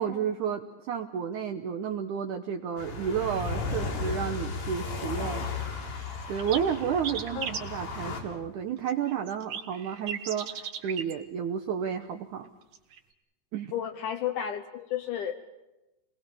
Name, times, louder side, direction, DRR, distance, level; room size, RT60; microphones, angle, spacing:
voice 1, 0.0-5.5 6.3-12.5 13.5-13.7, right 8 dB, 75° right, 4 dB, 1.9 m, -31 dB
sound 1, 2.8-8.2, left 4 dB, 85° left, 6.0 m, -35 dB
sound 2, 5.7-5.8 6.0-7.6 8.9-11.1 12.6-13.0, right 7 dB, 55° right, 2.1 m, -36 dB
voice 2, 13.7-15.4, left 9 dB, 70° left, 7 dB, 2.0 m, -32 dB
28.5 x 20.5 x 6.9 m, 0.99 s
omnidirectional pair, 4.7 m